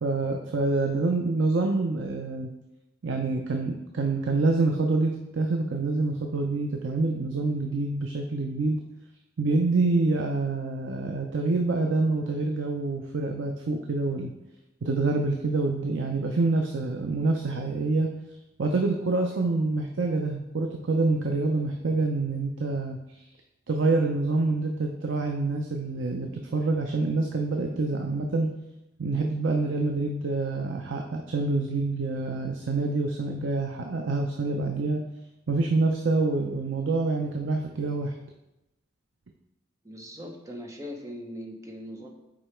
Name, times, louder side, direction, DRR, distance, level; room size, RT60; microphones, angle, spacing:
voice 1, 0.0-2.5 3.0-8.8 9.4-14.3 14.8-18.1 18.6-23.0 23.7-28.5 29.0-35.0 35.5-38.1, right 3 dB, 85° right, 3 dB, 0.6 m, -26 dB
voice 2, 39.8-42.1, equal, 15° right, 1 dB, 0.8 m, -40 dB
5.0 x 4.6 x 4.4 m, 0.92 s
head